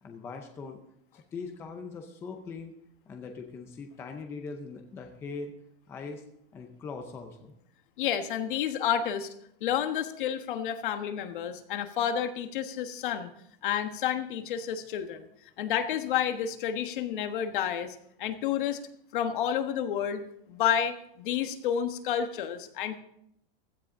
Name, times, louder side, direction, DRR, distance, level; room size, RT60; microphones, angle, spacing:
voice 1, 0.0-0.8 1.1-2.7 3.1-5.5 5.9-6.2 6.5-7.5, left 4 dB, 10° left, 4 dB, 0.5 m, -41 dB
voice 2, 8.0-9.3 9.6-13.3 13.6-15.2 15.6-18.8 19.1-20.2 20.5-23.0, left 9 dB, 60° left, 8 dB, 1.4 m, -30 dB
16.0 x 13.0 x 3.7 m, 0.74 s
supercardioid pair, 175°, 29 cm